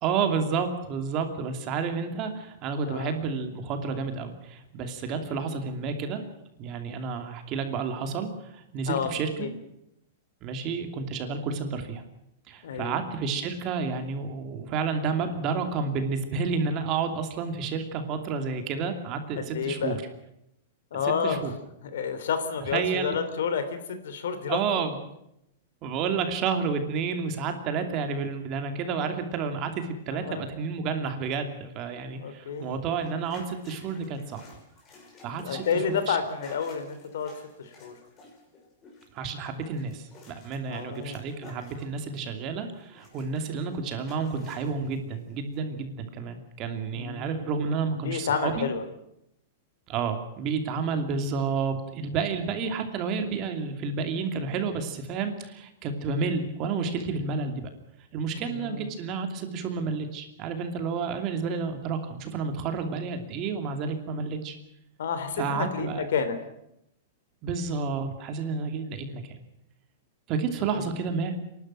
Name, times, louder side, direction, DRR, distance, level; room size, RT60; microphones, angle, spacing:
voice 1, 0.0-6.2 6.6-9.5 10.4-12.0 12.5-20.0 20.9-21.5 22.7-23.2 24.5-25.0 25.8-34.4 35.2-36.2 39.1-48.7 49.9-57.7 58.1-64.6 65.4-66.1 67.4-69.4 70.3-71.3, right 5 dB, 30° right, 7 dB, 2.8 m, -30 dB
voice 2, 5.3-5.6 8.9-9.5 12.6-13.0 19.4-20.0 20.9-21.4 21.8-24.6 30.1-30.5 32.2-32.8 35.4-37.3 37.6-37.9 40.7-41.2 46.9-47.5 47.9-48.8 58.3-58.9 65.0-66.4 70.7-70.9, left 6 dB, 80° left, 10 dB, 3.3 m, -30 dB
sound 1, 32.5-42.5 42.8-45.0 45.5-45.6, left 3 dB, 25° left, 5.8 m, -53 dB
27.0 x 12.0 x 9.1 m, 0.81 s
supercardioid pair, 155°, 0 cm